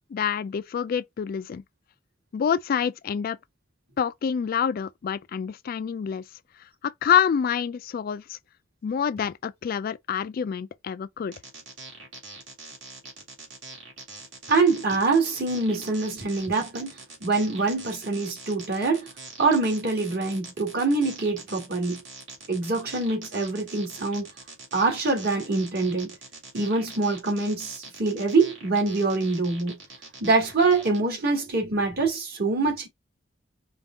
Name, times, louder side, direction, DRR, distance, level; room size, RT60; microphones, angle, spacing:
voice 1, 0.1-1.6 2.3-3.4 4.0-6.2 6.8-8.4 8.8-11.3, left 7 dB, 50° left, 0.3 m, -27 dB
sound 1, 11.3-31.0, right 3 dB, 70° right, 2.5 m, -43 dB
voice 2, 14.5-19.1 19.4-22.0 22.5-24.3 24.7-26.1 26.5-29.8 30.2-32.9, right 3 dB, 55° right, 2.3 m, -24 dB
5.2 x 2.4 x 3.5 m
head